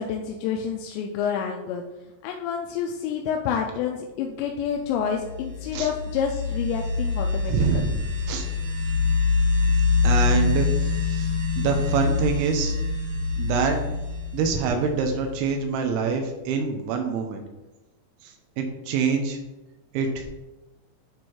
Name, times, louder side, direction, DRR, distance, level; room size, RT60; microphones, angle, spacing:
voice 1, 0.0-1.8 2.2-7.9, left 7 dB, 85° left, 2 dB, 2.7 m, -28 dB
sound 1, 4.9-15.4, left 4 dB, 70° right, 3.0 m, -25 dB
voice 2, 7.5-8.5 10.0-12.8 13.4-13.8 14.3-17.4 18.2-19.4 19.9-20.3, right 5 dB, 90° right, 4 dB, 3.1 m, -26 dB
8.8 x 3.1 x 4.5 m, 1.0 s
omnidirectional pair, 5.2 m